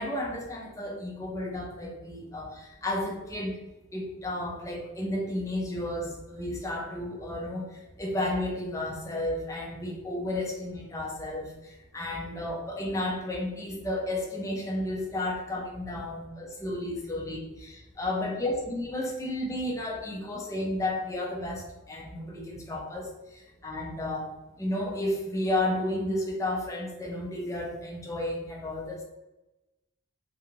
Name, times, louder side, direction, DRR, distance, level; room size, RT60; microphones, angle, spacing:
voice 1, 0.0-3.6 3.9-7.7 8.0-24.3 24.6-29.0, left 1 dB, 15° left, -1 dB, 0.5 m, -32 dB
2.4 x 2.2 x 3.0 m, 0.99 s
head